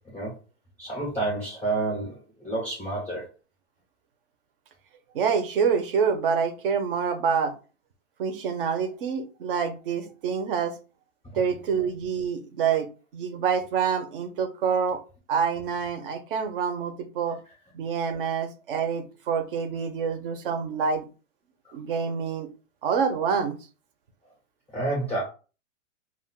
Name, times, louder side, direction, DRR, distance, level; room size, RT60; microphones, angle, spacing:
voice 1, 0.8-2.1 2.4-3.3 21.6-21.8 24.7-25.2, right 2 dB, 5° left, -4 dB, 0.4 m, -29 dB
voice 2, 5.1-7.5 8.2-10.7 11.3-12.9 13.1-15.0 15.3-17.4 17.7-21.0 21.7-22.5 22.8-23.6, right 6 dB, 45° right, 8 dB, 0.5 m, -26 dB
2.2 x 2.1 x 3.6 m, 0.34 s
hypercardioid pair, 155°, 39 cm